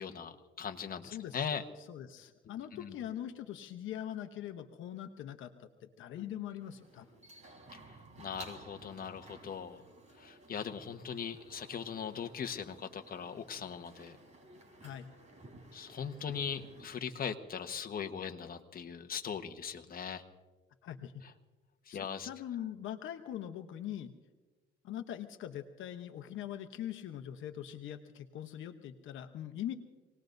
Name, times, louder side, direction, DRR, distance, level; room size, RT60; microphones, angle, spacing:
voice 1, 0.0-1.6 2.4-3.0 6.1-6.3 7.7-9.8 10.2-14.2 15.7-20.2 21.2-21.3 21.9-22.3, left 7 dB, 50° left, 6 dB, 1.2 m, -40 dB
voice 2, 1.0-1.4 1.9-5.7 6.0-7.1 14.8-15.1 20.8-21.1 21.9-24.1 24.8-29.7, left 11 dB, 80° left, 7 dB, 0.9 m, -42 dB
sound 1, 6.6-16.9, right 2 dB, 35° right, 4.1 m, -55 dB
27.0 x 19.0 x 2.6 m, 1.3 s
cardioid pair, 90°, 20 cm